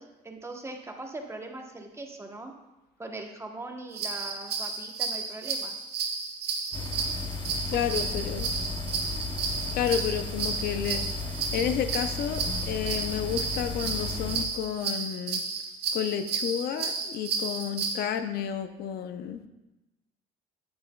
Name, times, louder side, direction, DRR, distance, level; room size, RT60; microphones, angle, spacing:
voice 1, 0.0-2.5 3.0-5.7 7.7-8.1, right 2 dB, 15° right, 3 dB, 0.9 m, -41 dB
sound 1, 3.9-18.0, right 5 dB, 75° right, 1.2 m, -32 dB
sound 2, 6.7-14.5, left 3 dB, 25° left, 0.6 m, -35 dB
voice 2, 7.7-8.5 9.7-11.0 11.5-15.4 15.9-19.4, left 9 dB, 65° left, 9 dB, 0.6 m, -31 dB
9.2 x 8.7 x 2.2 m, 1.0 s
cardioid pair, 110°, 17 cm